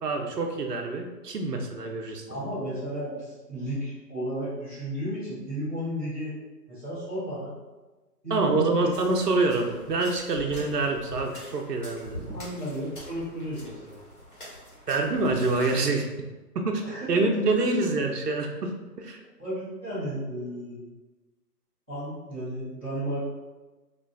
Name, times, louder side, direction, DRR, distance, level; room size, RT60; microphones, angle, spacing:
voice 1, 0.0-2.5 8.3-12.3 14.9-16.1 16.5-16.8 17.1-19.2, right 3 dB, 70° right, 3 dB, 0.8 m, -26 dB
voice 2, 2.3-6.3 6.7-7.5 8.2-8.9 12.3-14.0 16.8-17.1 19.4-20.8 21.9-23.2, equal, 5° right, -19 dB, 0.7 m, -33 dB
sound 1, 8.9-15.7, equal, 30° left, 1.1 m, -44 dB
5.0 x 2.5 x 2.3 m, 1.2 s
figure-of-eight pair, 155°, 49 cm